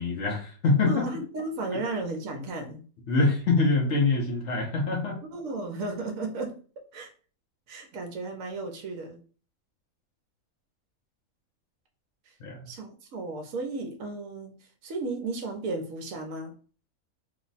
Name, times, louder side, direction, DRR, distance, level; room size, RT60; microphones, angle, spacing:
voice 1, 0.0-1.1 1.7-1.8 3.1-5.2 12.4-12.7, left 3 dB, 60° left, 1 dB, 0.9 m, -25 dB
voice 2, 0.8-2.8 5.3-6.6 6.9-7.1 7.7-9.2 12.7-14.5 14.8-16.5, right 3 dB, 70° right, 3 dB, 1.0 m, -34 dB
3.0 x 2.1 x 3.9 m, 0.39 s
omnidirectional pair, 1.6 m